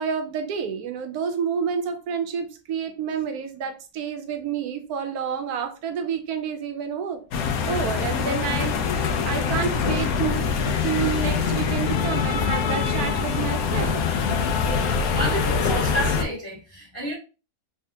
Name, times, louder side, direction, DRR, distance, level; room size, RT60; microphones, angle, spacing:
voice 1, 0.0-8.8 9.2-10.4 10.8-14.1, right 7 dB, 75° right, 1.1 m, -29 dB
sound 1, 7.3-16.2, left 5 dB, 70° left, 1.0 m, -24 dB
voice 2, 15.1-17.1, right 1 dB, 10° left, 1.5 m, -29 dB
3.4 x 3.2 x 2.7 m
omnidirectional pair, 1.7 m